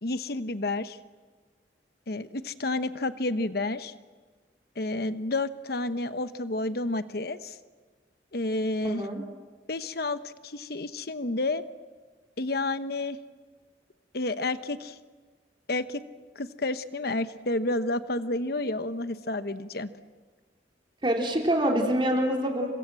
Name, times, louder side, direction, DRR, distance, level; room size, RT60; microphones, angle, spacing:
voice 1, 0.0-1.0 2.1-3.9 4.8-7.6 8.3-9.1 9.7-11.6 12.4-13.2 14.1-15.0 15.7-16.0 16.3-19.9, left 2 dB, 60° left, 11 dB, 1.0 m, -30 dB
voice 2, 8.8-9.2 21.0-22.7, equal, 30° right, 1 dB, 3.3 m, -25 dB
29.5 x 25.0 x 7.6 m, 1.4 s
head